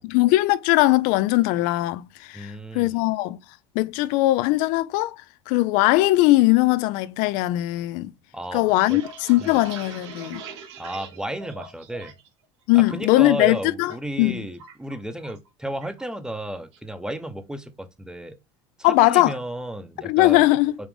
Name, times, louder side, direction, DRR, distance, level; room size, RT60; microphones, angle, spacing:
voice 1, 0.0-3.4 3.8-5.1 5.5-8.1 8.5-10.4 12.7-13.9 14.2-14.4 18.8-19.3 20.0-20.7, left 18 dB, 65° left, 0.4 m, -20 dB
voice 2, 2.3-3.1 8.3-9.0 9.4-9.6 10.8-12.1 12.7-18.4 18.9-20.4, right 1 dB, 5° right, 0.7 m, -33 dB
sound 1, 8.9-12.3 12.6-13.1 13.5-14.0 14.2-15.5 15.8-16.0 16.4-16.9, right 4 dB, 90° right, 1.2 m, -42 dB
5.0 x 2.5 x 3.4 m
supercardioid pair, 110°, 14 cm